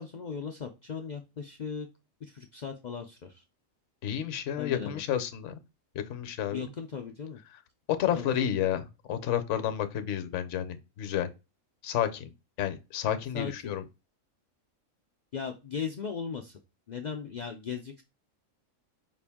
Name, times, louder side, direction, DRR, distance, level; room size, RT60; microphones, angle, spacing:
voice 1, 0.0-1.9 2.2-3.4 4.6-5.0 6.5-7.4 8.1-8.6 13.3-13.7 15.3-16.6 16.9-18.0, left 6 dB, 85° left, 0.3 m, -37 dB
voice 2, 4.0-5.5 5.9-6.7 8.0-11.3 11.8-12.3 12.6-13.8, left 10 dB, 65° left, 0.9 m, -31 dB
5.2 x 2.5 x 3.4 m
omnidirectional pair, 1.4 m